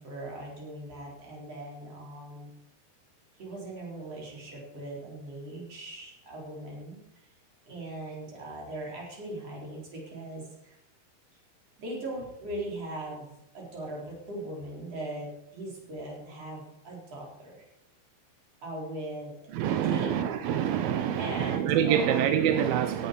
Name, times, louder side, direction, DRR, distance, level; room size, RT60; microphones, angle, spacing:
voice 1, 0.0-2.5 3.4-7.0 7.7-10.8 11.8-17.7 18.6-20.3 21.1-22.3, right 1 dB, 35° right, -3 dB, 5.3 m, -39 dB
voice 2, 19.5-23.1, right 9 dB, 80° right, 8 dB, 2.1 m, -26 dB
17.5 x 11.0 x 5.5 m, 0.89 s
omnidirectional pair, 5.3 m